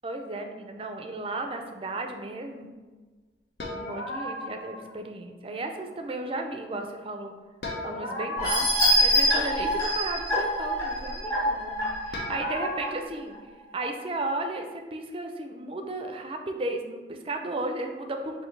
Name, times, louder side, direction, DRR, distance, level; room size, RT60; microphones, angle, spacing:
voice 1, 0.0-2.7 3.7-7.3 7.8-13.4 13.7-18.5, right 2 dB, 30° right, 4 dB, 0.4 m, -34 dB
sound 1, 3.6-4.9 7.6-9.5 12.1-12.9, left 1 dB, 70° left, 0.8 m, -36 dB
sound 2, 8.4-12.8 13.3-13.4 13.8-13.9, equal, 20° left, 1.4 m, -25 dB
6.3 x 2.6 x 3.2 m, 1.3 s
head